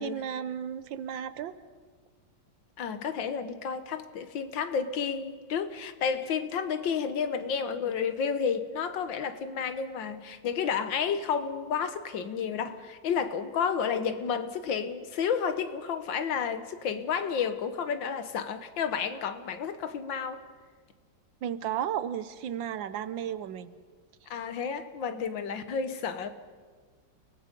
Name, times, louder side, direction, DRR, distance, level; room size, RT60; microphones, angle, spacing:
voice 1, 0.0-1.5 21.4-23.8, right 9 dB, 80° right, 14 dB, 1.5 m, -34 dB
voice 2, 2.8-20.4 24.3-26.3, left 6 dB, 80° left, 10 dB, 1.8 m, -31 dB
30.0 x 19.0 x 5.2 m, 1.5 s
omnidirectional pair, 2.1 m